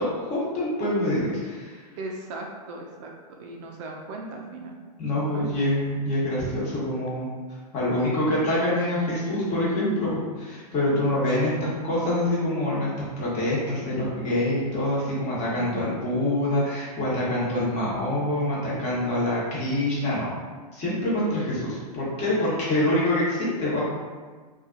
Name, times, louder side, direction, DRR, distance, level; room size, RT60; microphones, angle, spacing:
voice 1, 0.0-1.8 5.0-7.3 7.7-20.3 20.7-23.8, left 1 dB, 35° left, -7 dB, 1.1 m, -25 dB
voice 2, 2.0-3.1 3.4-4.8 5.1-5.5 11.3-11.4 15.5-15.9 22.8-22.9, right 2 dB, 50° right, 1 dB, 0.4 m, -38 dB
2.5 x 2.3 x 2.5 m, 1.4 s
hypercardioid pair, 120°, 21 cm